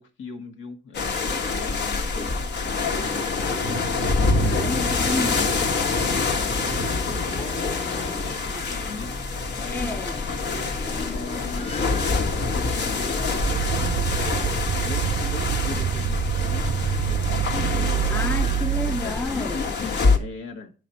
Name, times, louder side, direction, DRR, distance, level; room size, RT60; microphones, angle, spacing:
voice 1, 0.0-3.6 4.9-5.7 6.7-9.1 9.5-10.0 10.6-13.5 14.8-17.5 17.8-18.3 18.9-20.7, left 4 dB, 80° left, 1.4 m, -39 dB
sound 1, 0.9-20.2, left 3 dB, 60° left, 1.4 m, -26 dB
voice 2, 4.4-5.4 9.7-10.2 18.1-19.7, left 2 dB, 10° left, 0.5 m, -30 dB
sound 2, 6.6-19.5, left 3 dB, 30° left, 0.9 m, -43 dB
sound 3, 13.3-19.1, right 10 dB, 40° right, 0.4 m, -26 dB
9.7 x 4.9 x 4.2 m
cardioid pair, 90°, 20 cm